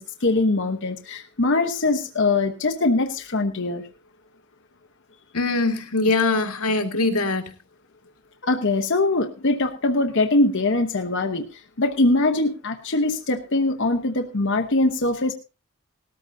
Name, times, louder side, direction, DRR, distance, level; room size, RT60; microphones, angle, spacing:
voice 1, 0.0-3.8 8.4-11.4 11.8-15.3, left 2 dB, 55° left, 4 dB, 1.0 m, -22 dB
voice 2, 5.3-7.5, left 3 dB, 80° left, 5 dB, 1.9 m, -22 dB
18.5 x 13.5 x 2.7 m, 0.30 s
head